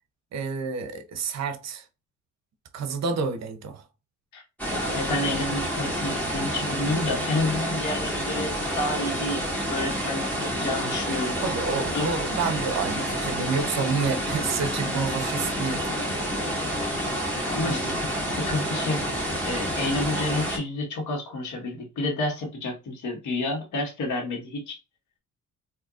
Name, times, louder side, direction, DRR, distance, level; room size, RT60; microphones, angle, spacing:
voice 1, 0.3-1.8 2.7-3.8 11.4-16.1 17.6-18.0, right 5 dB, 60° right, 0.7 m, -29 dB
voice 2, 4.3-9.4 9.7-11.4 11.9-12.1 17.5-18.1 18.3-19.0 19.4-24.8, left 2 dB, 75° left, 1.4 m, -30 dB
sound 1, 4.6-20.6, equal, 5° left, 2.0 m, -29 dB
3.9 x 2.7 x 2.4 m
cardioid pair, 90°, 30 cm